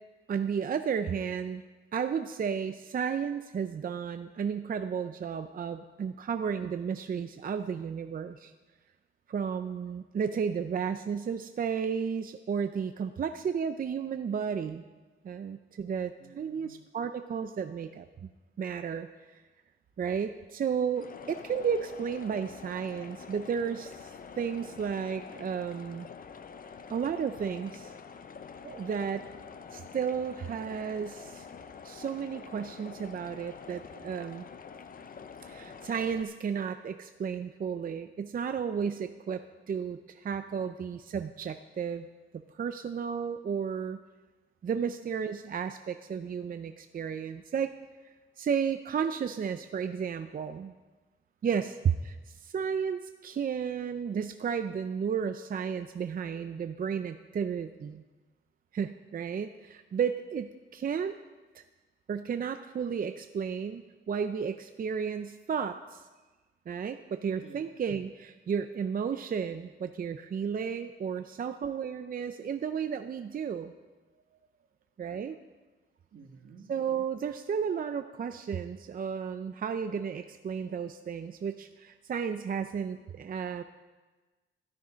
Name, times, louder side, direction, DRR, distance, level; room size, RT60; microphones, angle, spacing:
voice 1, 0.3-1.6 1.9-8.5 9.3-14.8 15.2-18.3 18.6-19.4 20.0-26.1 26.9-27.9 28.6-29.2 29.7-31.5 31.8-34.5 35.5-42.1 42.5-44.0 44.6-47.7 48.0-50.7 51.4-58.0 58.7-61.2 61.5-61.6 62.1-66.0 66.7-73.7 75.0-75.4 76.7-83.6, right 7 dB, 45° right, 8 dB, 0.5 m, -33 dB
voice 2, 16.2-16.8 51.5-51.7 67.4-67.7 74.1-74.7 76.1-76.7, right 5 dB, 80° right, 3 dB, 1.7 m, -54 dB
sound 1, 21.0-36.2, left 6 dB, 40° left, 0.6 m, -47 dB
13.0 x 12.0 x 5.1 m, 1.2 s
wide cardioid pair, 155°, 21 cm